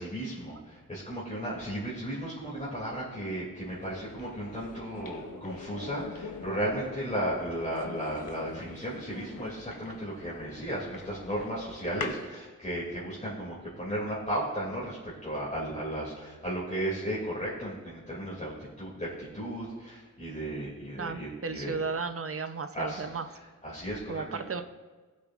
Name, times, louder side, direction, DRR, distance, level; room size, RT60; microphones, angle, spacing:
voice 1, 0.0-21.8 22.7-23.1 23.6-24.4, right 1 dB, 20° left, -7 dB, 2.4 m, -35 dB
sound 1, 3.7-12.3, left 4 dB, 85° left, 1.0 m, -44 dB
voice 2, 21.0-23.3 24.1-24.6, right 4 dB, 40° right, 9 dB, 0.6 m, -34 dB
19.5 x 7.2 x 2.4 m, 1.3 s
wide cardioid pair, 125°, 33 cm